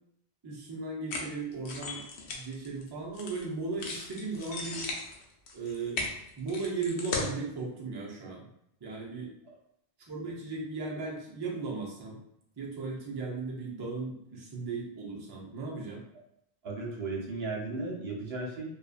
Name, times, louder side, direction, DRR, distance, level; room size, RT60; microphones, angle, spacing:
voice 1, 0.4-2.0 2.3-4.9 5.5-6.0 6.4-8.5 8.8-9.3 10.0-12.2 12.6-16.0, right 3 dB, 30° right, -3 dB, 0.4 m, -36 dB
sound 1, 1.1-3.4 3.8-7.3, left 3 dB, 90° left, 0.8 m, -37 dB
voice 2, 16.6-18.7, right 3 dB, 75° right, -1 dB, 0.9 m, -35 dB
2.6 x 2.3 x 2.4 m, 0.78 s
omnidirectional pair, 1.1 m